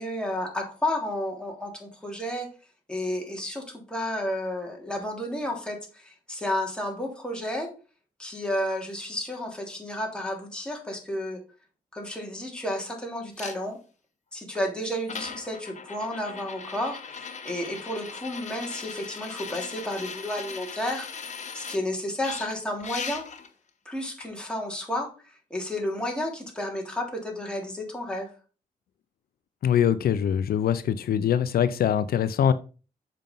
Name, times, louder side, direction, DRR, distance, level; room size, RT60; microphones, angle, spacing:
voice 1, 0.0-2.5 2.9-7.7 8.2-11.4 11.9-13.8 14.3-21.1 21.5-23.2 23.8-28.3, left 1 dB, 5° left, 0 dB, 3.3 m, -32 dB
sound 1, 13.4-13.6 14.6-14.7 15.1-21.8 22.2-23.5 24.2-24.3, left 6 dB, 50° left, 1.3 m, -39 dB
voice 2, 29.6-32.5, left 9 dB, 80° left, 13 dB, 0.6 m, -23 dB
7.5 x 5.3 x 5.4 m, 0.35 s
cardioid pair, 85°, 15 cm